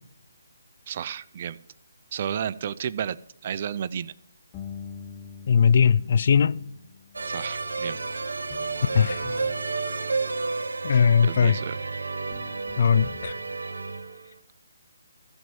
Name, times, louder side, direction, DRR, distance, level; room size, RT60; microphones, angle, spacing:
voice 1, 0.9-1.6 2.1-3.2 3.4-4.1 7.2-8.0 10.9-11.8, right 8 dB, 40° right, 0.5 m, -32 dB
sound 1, 4.5-10.5 11.7-11.8 12.3-13.3, left 7 dB, 20° left, 0.8 m, -45 dB
voice 2, 5.5-6.6 8.9-9.2 10.8-11.6 12.8-13.3, left 7 dB, 50° left, 0.5 m, -19 dB
sound 2, 7.1-14.3, right 3 dB, 85° right, 0.9 m, -31 dB
15.5 x 5.4 x 7.0 m
hypercardioid pair, 155°, 0 cm